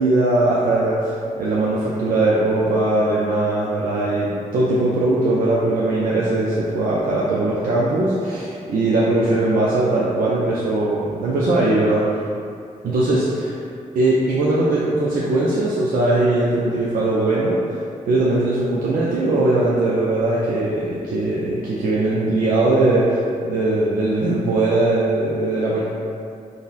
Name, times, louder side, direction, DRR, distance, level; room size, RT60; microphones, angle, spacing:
voice 1, 0.0-12.0 12.8-13.6 14.0-17.8 18.1-25.8, right 2 dB, 85° right, -7 dB, 0.4 m, -20 dB
3.8 x 2.0 x 2.4 m, 2.5 s
cardioid pair, 70°, 14 cm